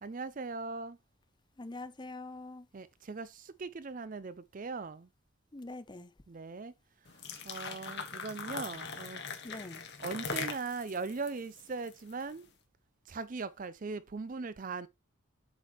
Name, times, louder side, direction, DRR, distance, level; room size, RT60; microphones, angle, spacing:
voice 1, 0.0-1.0 2.7-5.1 6.3-6.7 7.4-9.2 10.0-12.5 13.1-14.9, right 4 dB, 40° right, 0.4 m, -39 dB
voice 2, 1.6-2.7 5.5-6.1 9.4-9.8, left 2 dB, 20° left, 0.6 m, -44 dB
sound 1, 7.1-12.3, left 5 dB, 50° left, 1.5 m, -41 dB
8.3 x 6.1 x 3.0 m
head